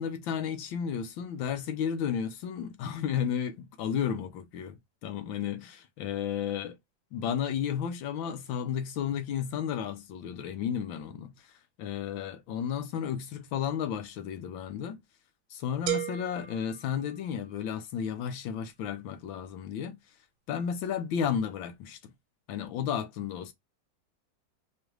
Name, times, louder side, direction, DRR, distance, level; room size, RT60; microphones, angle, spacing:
voice 1, 0.0-6.8 7.1-11.3 11.8-15.0 15.5-20.0 20.5-22.0 22.5-23.5, left 8 dB, 80° left, 1.6 m, -33 dB
sound 1, 15.9-17.7, right 13 dB, 80° right, 1.4 m, -36 dB
5.0 x 2.4 x 3.1 m
omnidirectional pair, 2.1 m